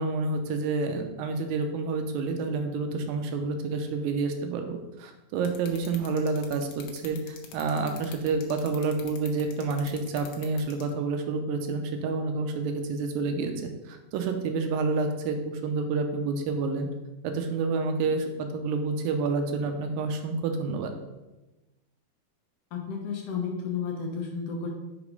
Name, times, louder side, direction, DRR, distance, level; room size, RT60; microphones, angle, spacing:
voice 1, 0.0-16.9 17.2-20.9, right 4 dB, 80° right, 6 dB, 2.4 m, -29 dB
sound 1, 5.5-10.9, left 9 dB, 90° left, 2.7 m, -44 dB
voice 2, 22.7-24.7, left 6 dB, 70° left, 1 dB, 2.4 m, -32 dB
5.9 x 5.0 x 5.2 m, 1.0 s
omnidirectional pair, 4.1 m